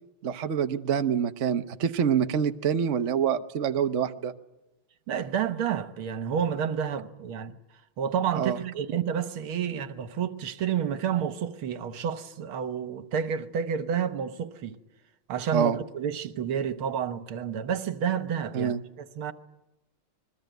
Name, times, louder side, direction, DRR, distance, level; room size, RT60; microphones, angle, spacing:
voice 1, 0.2-4.3 8.3-8.6 15.5-15.8 18.5-18.8, right 7 dB, 45° right, 1.1 m, -26 dB
voice 2, 5.1-7.5 8.0-14.8 15.3-19.3, right 8 dB, 75° right, 2.0 m, -30 dB
28.0 x 21.5 x 9.2 m
omnidirectional pair, 2.3 m